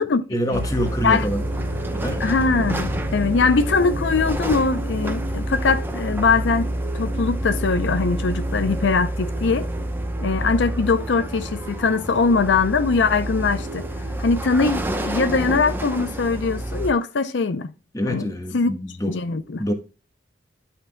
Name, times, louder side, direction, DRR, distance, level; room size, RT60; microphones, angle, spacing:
voice 1, 0.3-1.4 1.9-2.2 17.9-19.2 19.6-19.7, equal, 20° left, 1.3 m, -25 dB
sound 1, 0.5-16.9, right 1 dB, 10° right, 0.7 m, -28 dB
sound 2, 1.1-14.9, equal, 85° right, 1.9 m, -37 dB
voice 2, 2.2-9.7 10.2-13.9 14.2-17.7 18.1-18.7 19.1-19.6, left 4 dB, 70° left, 0.5 m, -21 dB
10.5 x 5.8 x 2.2 m
head